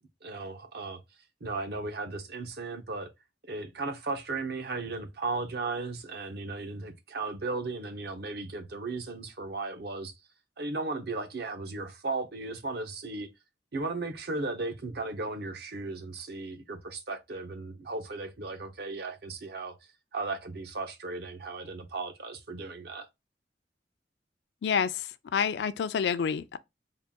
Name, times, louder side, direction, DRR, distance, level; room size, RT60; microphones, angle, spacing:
voice 1, 0.2-1.0 1.4-3.1 3.5-10.1 10.6-13.3 13.7-19.7 20.1-23.1, right 3 dB, 60° right, 0.7 m, -36 dB
voice 2, 24.6-26.6, left 7 dB, 70° left, 0.3 m, -28 dB
3.7 x 2.2 x 3.5 m
head